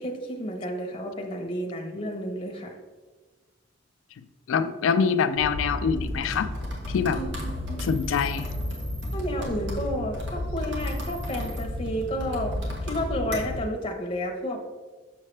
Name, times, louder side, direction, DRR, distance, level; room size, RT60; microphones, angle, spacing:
voice 1, 0.0-2.8 7.1-7.9 9.1-14.6, equal, 30° left, 1 dB, 0.9 m, -31 dB
voice 2, 4.5-6.5 6.9-7.2 7.8-8.5, left 6 dB, 85° left, 11 dB, 0.4 m, -24 dB
sound 1, 5.4-13.6, left 1 dB, 65° right, 1.5 m, -32 dB
6.6 x 6.5 x 3.3 m, 1.3 s
head